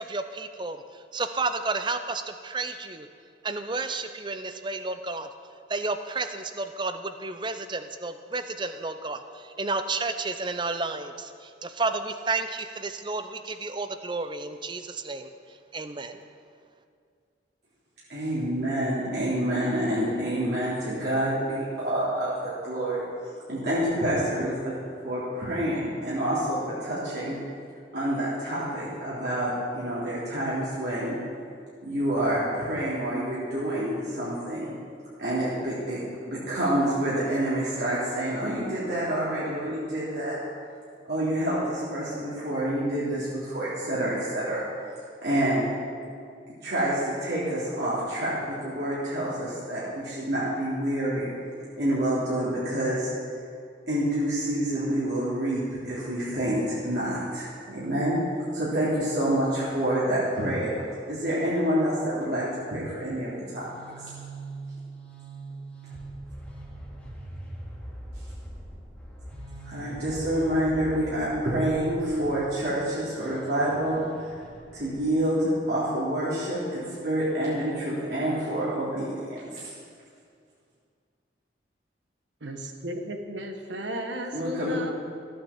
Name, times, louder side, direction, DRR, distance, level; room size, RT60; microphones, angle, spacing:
voice 1, 0.0-3.1 3.4-5.3 5.7-15.3 15.7-16.2, right 3 dB, 25° right, 9 dB, 0.6 m, -31 dB
voice 2, 18.1-23.0 23.5-24.7 25.0-27.4 27.9-31.2 31.8-34.7 35.2-36.0 36.3-40.4 41.1-44.6 45.2-45.7 46.6-51.3 51.8-53.3 53.9-58.2 58.5-60.7 61.1-63.7 64.0-64.1 69.6-74.4 74.7-79.7 84.3-84.7, right 1 dB, 65° right, -9 dB, 3.4 m, -27 dB
sound 1, 63.3-75.2, right 1 dB, 5° left, 2.3 m, -42 dB
voice 3, 82.4-84.9, right 1 dB, 85° right, 4 dB, 1.5 m, -34 dB
14.5 x 8.8 x 7.3 m, 2.2 s
head